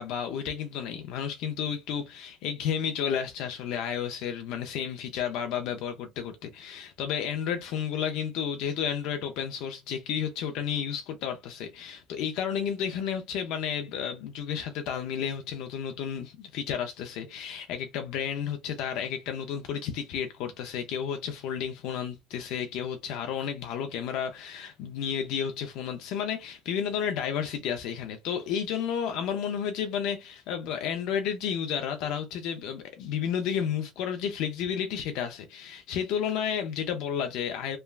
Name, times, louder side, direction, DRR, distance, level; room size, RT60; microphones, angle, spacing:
voice 1, 0.0-37.8, left 8 dB, 70° left, 0.4 m, -32 dB
3.2 x 2.2 x 2.2 m
supercardioid pair, 100°, 0 cm